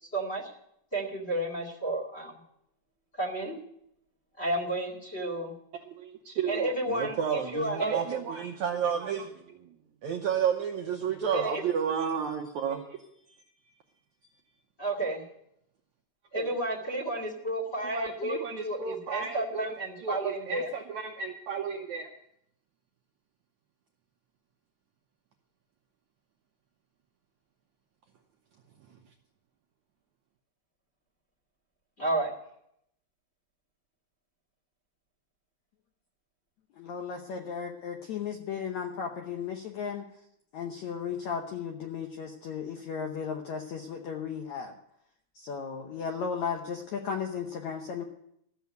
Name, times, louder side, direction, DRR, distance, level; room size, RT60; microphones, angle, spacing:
voice 1, 0.1-0.5 0.9-2.3 3.2-3.6 4.4-5.5 6.5-7.9 11.3-11.6 14.8-15.2 16.3-20.7 32.0-32.3, right 1 dB, 25° left, 0 dB, 1.7 m, -31 dB
voice 2, 5.7-9.7 10.0-13.1 13.7-13.8 16.3-16.5 17.9-19.7 20.0-22.1, right 7 dB, 75° right, 3 dB, 1.8 m, -32 dB
voice 3, 36.8-40.1 40.5-44.7 45.4-48.1, left 6 dB, 70° left, 3 dB, 1.8 m, -35 dB
14.0 x 7.3 x 9.3 m, 0.76 s
omnidirectional pair, 4.4 m